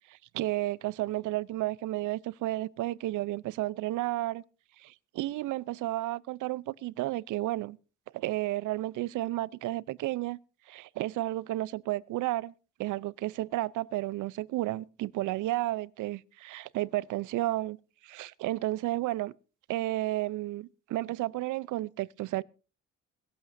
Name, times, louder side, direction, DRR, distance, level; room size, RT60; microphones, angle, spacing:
voice 1, 0.1-4.4 4.8-7.8 8.1-10.4 10.7-12.5 12.8-17.8 18.0-19.3 19.7-22.4, right 16 dB, 85° right, 0.6 m, -32 dB
22.0 x 12.0 x 2.6 m
cardioid pair, 90°, 30 cm